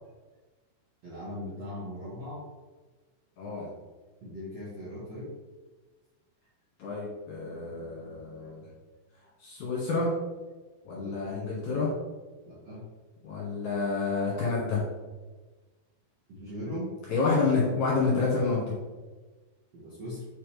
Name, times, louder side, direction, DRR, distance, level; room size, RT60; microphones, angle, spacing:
voice 1, 1.0-2.4 4.2-5.3 11.0-11.4 12.5-12.8 16.3-17.0 19.7-20.3, left 1 dB, 55° right, -8 dB, 1.9 m, -39 dB
voice 2, 3.4-3.7 6.8-8.7 9.4-10.1 10.8-11.9 13.2-14.9 17.1-18.8, left 4 dB, 55° left, -6 dB, 2.4 m, -28 dB
6.9 x 5.7 x 3.3 m, 1.3 s
omnidirectional pair, 4.9 m